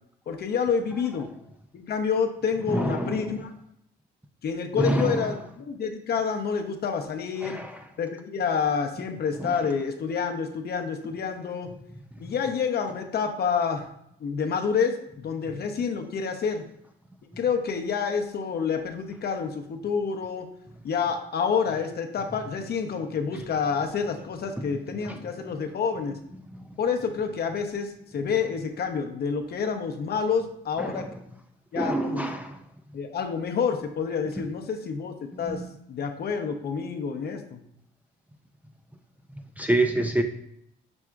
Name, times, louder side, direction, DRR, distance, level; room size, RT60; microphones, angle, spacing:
voice 1, 0.3-1.3 1.7-3.5 4.4-7.6 8.0-11.7 12.2-13.9 14.2-16.6 17.2-20.5 20.8-26.2 26.8-31.1 31.7-32.3 32.9-35.6 35.9-37.6, left 6 dB, 55° left, 4 dB, 0.6 m, -28 dB
voice 2, 2.6-3.3 4.8-5.3 7.4-7.9 9.4-9.7 24.6-24.7 25.0-25.2 30.8-31.2 31.7-32.6 34.4-34.5 35.4-35.7 39.6-40.2, right 1 dB, 5° right, 3 dB, 0.4 m, -27 dB
6.1 x 3.5 x 2.3 m, 0.75 s
cardioid pair, 90°, 20 cm